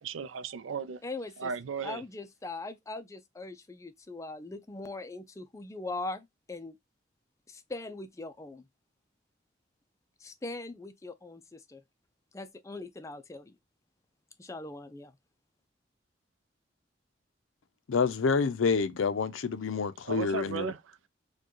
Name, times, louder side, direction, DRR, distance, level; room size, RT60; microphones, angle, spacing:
voice 1, 0.0-1.0 1.4-2.0 20.0-21.1, right 6 dB, 90° right, 0.4 m, -36 dB
voice 2, 1.0-1.5 1.8-6.8 7.5-8.7 10.2-11.8 12.3-13.6 14.4-15.1, left 2 dB, 15° left, 0.3 m, -41 dB
voice 3, 17.9-20.7, left 5 dB, 90° left, 0.5 m, -28 dB
4.4 x 2.2 x 3.0 m
head